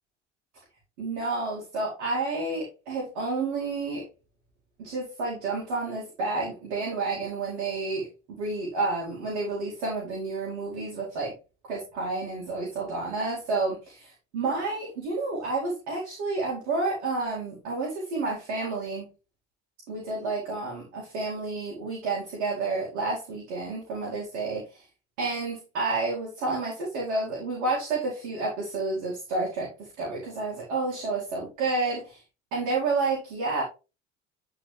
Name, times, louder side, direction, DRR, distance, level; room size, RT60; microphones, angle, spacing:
voice 1, 1.0-4.1 4.8-11.3 11.7-19.1 19.9-24.8 25.2-32.2 32.5-33.6, right 3 dB, 75° right, -3 dB, 2.4 m, -30 dB
9.9 x 3.9 x 3.2 m, 0.30 s
hypercardioid pair, 65°, 33 cm